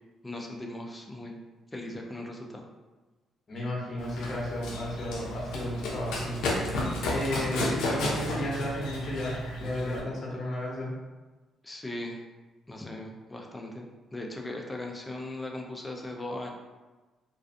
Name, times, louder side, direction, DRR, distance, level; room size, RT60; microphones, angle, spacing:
voice 1, 0.2-1.4 1.7-2.7 11.6-12.2 12.7-13.9 14.1-16.5, left 1 dB, 15° left, 1 dB, 0.4 m, -38 dB
voice 2, 3.5-6.8 7.1-10.9, left 1 dB, 45° left, -5 dB, 0.9 m, -33 dB
Run, 4.0-10.0, left 1 dB, 85° left, 0.4 m, -32 dB
2.4 x 2.3 x 2.5 m, 1.2 s
cardioid pair, 90°, 0 cm